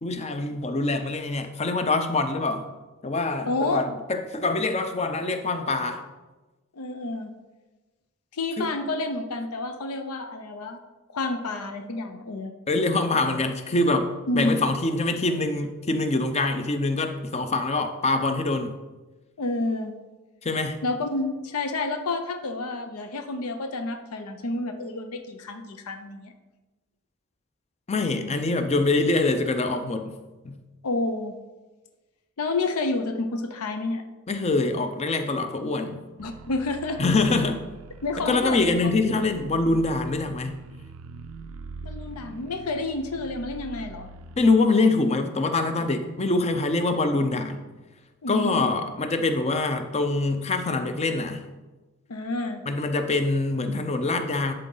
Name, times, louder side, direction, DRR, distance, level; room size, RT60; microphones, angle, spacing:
voice 1, 0.0-2.6 3.0-6.0 8.6-8.7 12.7-18.8 20.4-20.8 27.9-30.2 30.4-30.6 34.3-36.0 37.0-37.6 38.2-40.6 44.4-47.6 48.3-51.4 52.7-54.5, left 3 dB, 30° left, 7 dB, 0.5 m, -24 dB
voice 2, 3.5-4.0 6.7-7.3 8.3-10.8 11.1-12.5 14.3-14.6 19.4-19.9 20.8-26.3 30.8-31.3 32.4-34.0 36.2-37.0 38.0-38.7 41.8-44.1 48.2-48.7 52.1-52.6, left 2 dB, 90° left, 7 dB, 0.7 m, -29 dB
sound 1, 36.2-44.4, right 3 dB, 70° right, 0.4 m, -43 dB
11.0 x 4.0 x 3.9 m, 1.2 s
head